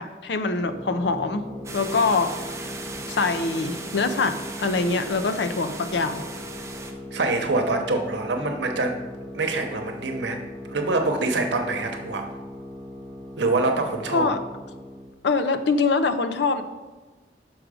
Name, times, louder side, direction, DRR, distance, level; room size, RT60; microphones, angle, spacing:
voice 1, 0.0-1.5 1.7-2.3 3.1-6.2 14.1-14.4 15.2-16.6, left 4 dB, 75° left, 10 dB, 0.5 m, -24 dB
sound 1, 0.6-15.2, left 1 dB, 10° left, 0.9 m, -39 dB
sound 2, 1.6-6.9, right 3 dB, 15° right, 0.5 m, -37 dB
voice 2, 7.1-9.0 9.3-12.3 13.4-14.3, right 2 dB, 80° right, 4 dB, 0.9 m, -25 dB
6.2 x 5.0 x 4.8 m, 1.2 s
head